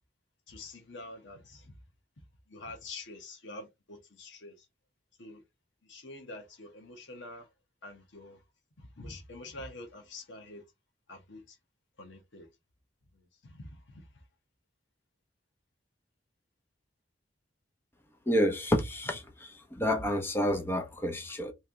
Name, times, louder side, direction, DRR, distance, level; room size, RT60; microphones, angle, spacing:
voice 1, 0.5-1.7 2.5-4.7 5.2-5.4 5.8-7.5 7.8-8.4 8.8-10.6 11.1-11.6 12.0-12.5 13.1-14.1, left 2 dB, 90° left, 1.1 m, -46 dB
voice 2, 18.3-21.5, equal, 10° left, 0.6 m, -29 dB
3.1 x 2.7 x 3.6 m
head